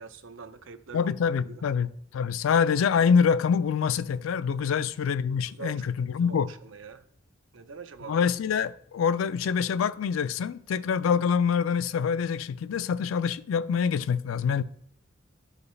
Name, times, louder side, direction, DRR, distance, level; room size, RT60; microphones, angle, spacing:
voice 1, 0.0-1.1 1.5-1.7 4.6-4.8 5.5-7.1 7.5-8.2, right 5 dB, 75° right, 0.6 m, -44 dB
voice 2, 0.9-6.5 8.1-14.6, left 6 dB, 85° left, 0.4 m, -25 dB
12.5 x 4.9 x 3.2 m
head